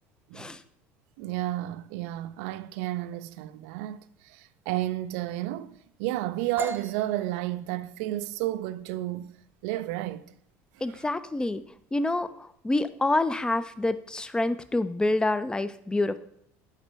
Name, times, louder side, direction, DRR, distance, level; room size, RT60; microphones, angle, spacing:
voice 1, 1.2-4.0 4.2-9.3 9.6-10.2, right 15 dB, 75° right, 0.4 m, -32 dB
sound 1, 6.6-14.2, right 2 dB, 30° right, 0.8 m, -44 dB
voice 2, 10.8-11.6 11.9-16.2, left 2 dB, 10° left, 0.4 m, -27 dB
5.8 x 3.3 x 5.5 m
hypercardioid pair, 80°, 8 cm